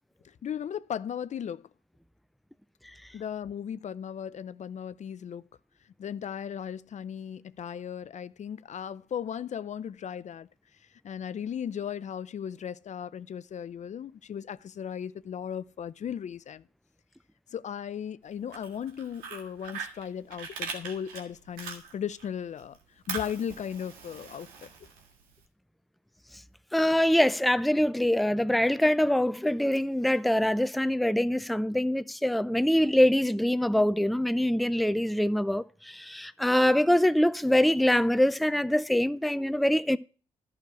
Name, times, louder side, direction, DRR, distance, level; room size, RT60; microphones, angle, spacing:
voice 1, 0.2-1.6 3.1-5.5 6.0-10.5 11.0-16.6 17.5-22.8 23.1-24.7, left 8 dB, 55° left, 0.5 m, -36 dB
Fire, 18.3-22.3 22.6-25.4, right 5 dB, 90° right, 1.8 m, -41 dB
voice 2, 26.7-40.0, left 1 dB, ahead, 0.6 m, -24 dB
11.5 x 6.4 x 5.7 m
supercardioid pair, 50°, 15 cm